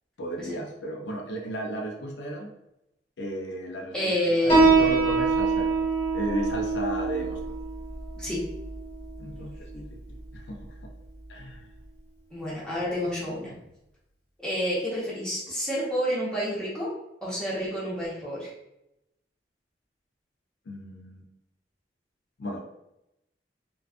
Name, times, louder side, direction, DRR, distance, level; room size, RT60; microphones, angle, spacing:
voice 1, 0.2-2.5 3.2-4.5 4.8-5.8 6.1-7.5 9.2-10.9 11.3-11.7 20.7-21.2 22.4-22.6, right 1 dB, 90° left, 1 dB, 0.5 m, -34 dB
voice 2, 3.9-4.7 8.2-8.4 12.3-13.6 14.4-16.9 17.2-18.5, equal, 5° left, -8 dB, 0.8 m, -29 dB
Piano, 4.5-11.6, right 3 dB, 35° left, 0.7 m, -26 dB
2.4 x 2.3 x 2.4 m, 0.86 s
head